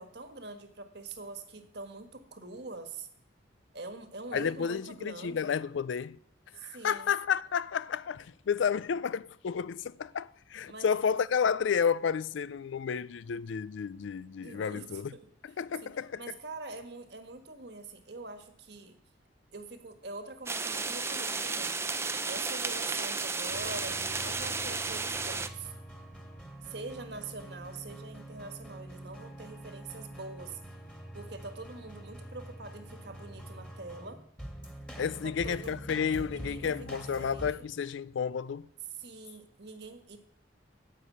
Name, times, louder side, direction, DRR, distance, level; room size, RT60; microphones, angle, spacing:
voice 1, 0.0-3.1 3.7-5.6 6.5-7.1 10.7-10.9 14.4-15.3 15.8-19.0 19.5-21.8 22.3-25.7 26.6-30.6 31.1-34.2 35.2-35.8 36.3-37.6 39.0-40.2, right 3 dB, 60° right, 1.5 m, -44 dB
voice 2, 4.3-6.2 6.6-15.1 15.4-16.2 35.0-38.7, left 6 dB, 75° left, 0.4 m, -31 dB
sound 1, 20.5-25.5, right 4 dB, 15° right, 0.5 m, -33 dB
sound 2, 23.5-37.5, right 1 dB, 5° left, 1.9 m, -45 dB
9.6 x 8.2 x 8.6 m
head